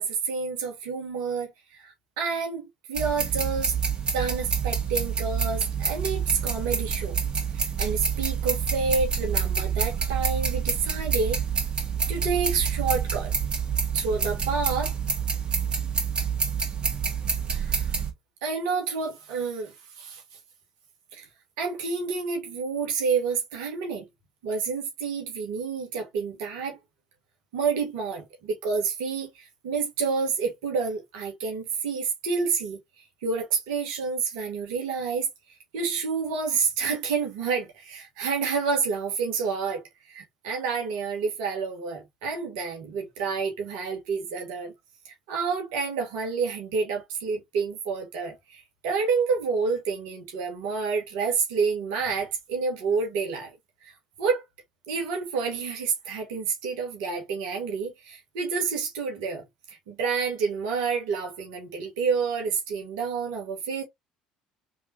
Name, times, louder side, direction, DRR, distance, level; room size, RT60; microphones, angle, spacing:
voice 1, 0.0-3.7 4.1-7.2 7.5-11.4 12.1-13.3 13.9-14.9 17.5-17.9 18.4-20.2 21.1-21.2 21.6-24.0 24.4-26.8 27.5-35.3 35.7-44.7 45.0-53.5 54.2-54.4 54.9-63.8, right 5 dB, 70° right, 1.4 m, -29 dB
sound 1, 2.9-18.1, right 6 dB, 30° right, 1.9 m, -27 dB
3.6 x 3.4 x 2.8 m
hypercardioid pair, 60°, 3 cm